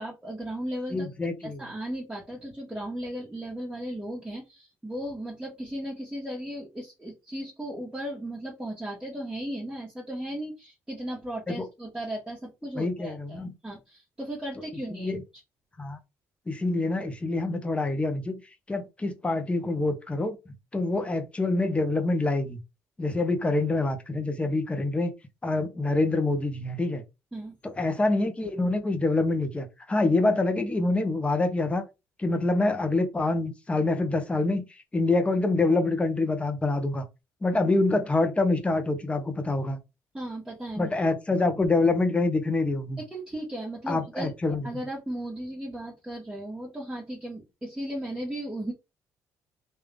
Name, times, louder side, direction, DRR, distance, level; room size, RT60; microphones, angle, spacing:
voice 1, 0.0-15.2 27.3-27.6 40.1-40.9 43.0-44.3 44.6-48.7, right 1 dB, 10° right, 1.5 m, -36 dB
voice 2, 0.9-1.6 11.5-11.7 12.8-13.5 15.0-15.2 15.8-16.0 16.5-18.4 18.7-20.4 20.7-22.6 23.0-25.1 25.4-27.0 27.6-31.8 32.2-34.6 34.9-37.0 37.4-39.8 40.8-43.0 43.9-44.6, left 2 dB, 20° left, 1.0 m, -26 dB
3.6 x 2.8 x 3.4 m
cardioid pair, 100°, 6 cm